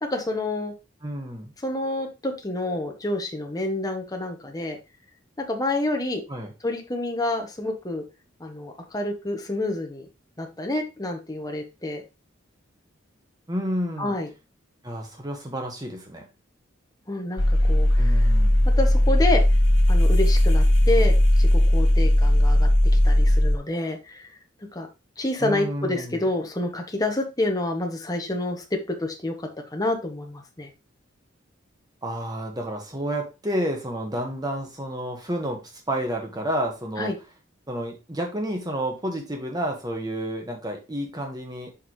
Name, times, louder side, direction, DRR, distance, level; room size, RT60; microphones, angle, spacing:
voice 1, 0.0-0.7 1.6-4.8 5.4-6.2 6.6-8.0 8.4-10.0 10.4-12.0 14.0-14.3 17.1-18.3 18.8-19.4 19.9-22.7 23.0-24.3 24.7-24.9 25.2-28.6 29.0-30.7 37.0-37.1, left 2 dB, 20° left, 3 dB, 1.2 m, -28 dB
voice 2, 1.0-1.5 6.3-6.5 13.5-14.2 14.8-16.2 18.0-18.7 25.4-26.2 32.0-37.1 37.7-41.7, right 1 dB, 20° right, 2 dB, 1.6 m, -30 dB
sound 1, 17.4-23.6, left 1 dB, 70° left, 2.5 m, -18 dB
6.8 x 5.5 x 3.2 m, 0.27 s
head